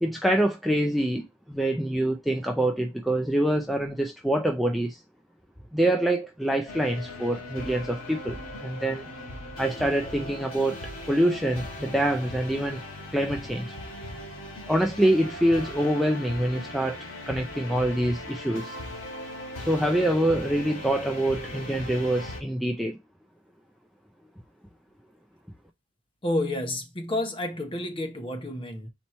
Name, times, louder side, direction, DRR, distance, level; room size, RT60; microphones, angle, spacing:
voice 1, 0.0-5.0 5.7-9.1 9.6-10.8 11.1-12.8 13.1-13.7 14.7-17.0 17.3-18.8 19.7-23.0, right 1 dB, ahead, 0.4 m, -25 dB
sound 1, 6.7-22.4, left 1 dB, 80° left, 1.6 m, -39 dB
voice 2, 26.2-28.9, left 1 dB, 25° left, 0.9 m, -30 dB
4.2 x 2.9 x 4.3 m
head